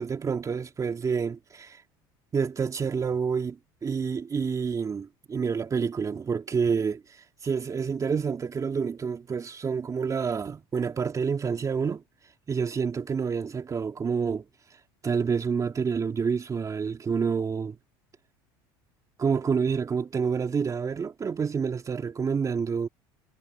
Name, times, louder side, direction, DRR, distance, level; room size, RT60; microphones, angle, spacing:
voice 1, 0.0-1.8 2.3-7.0 7.4-12.0 12.5-14.4 15.0-17.8 19.2-22.9, right 6 dB, 30° right, 3.3 m, -28 dB
supercardioid pair, 95°, 12 cm